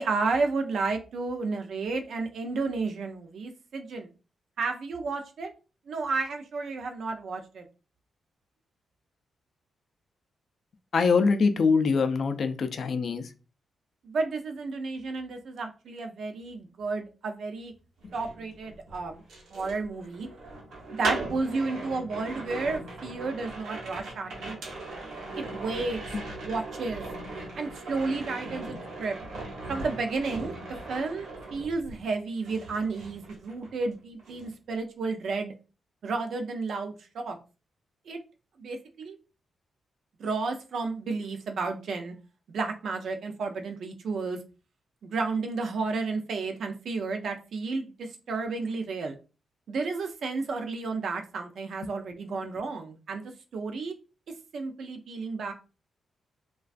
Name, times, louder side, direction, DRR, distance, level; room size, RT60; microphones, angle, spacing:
voice 1, 0.0-4.1 4.6-5.5 5.9-7.6 14.0-17.7 18.1-19.2 19.5-20.3 20.9-24.6 25.4-26.0 26.3-27.0 27.6-29.2 29.7-30.5 30.9-35.5 36.0-37.4 38.1-38.2 38.6-39.2 40.2-42.1 42.5-44.4 45.1-49.2 49.7-53.9 54.5-55.5, right 4 dB, 65° right, 5 dB, 0.4 m, -32 dB
voice 2, 10.9-13.3, left 4 dB, 50° left, 8 dB, 0.3 m, -23 dB
sound 1, 18.0-32.1 32.4-33.9 34.2-34.5, right 2 dB, 85° right, 0.8 m, -39 dB
2.4 x 2.2 x 2.4 m, 0.33 s
wide cardioid pair, 135°, 0 cm